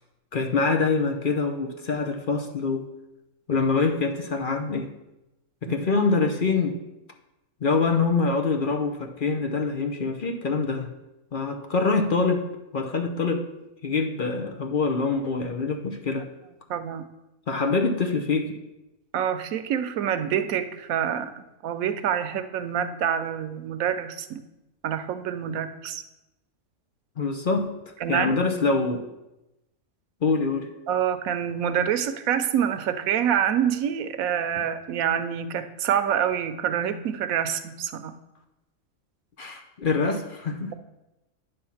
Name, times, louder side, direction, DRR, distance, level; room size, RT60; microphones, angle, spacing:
voice 1, 0.3-2.9 3.5-4.9 5.6-6.8 7.6-10.9 11.3-12.5 12.7-13.5 13.8-16.3 17.5-18.6 27.2-27.7 28.1-29.1 30.2-30.7 39.4-40.7, left 4 dB, 45° left, 4 dB, 0.8 m, -25 dB
voice 2, 16.7-17.0 19.1-21.3 21.6-24.4 24.8-26.0 28.0-28.3 30.9-38.1, right 9 dB, 90° right, 11 dB, 1.1 m, -26 dB
9.7 x 3.6 x 7.1 m, 0.95 s
omnidirectional pair, 1.4 m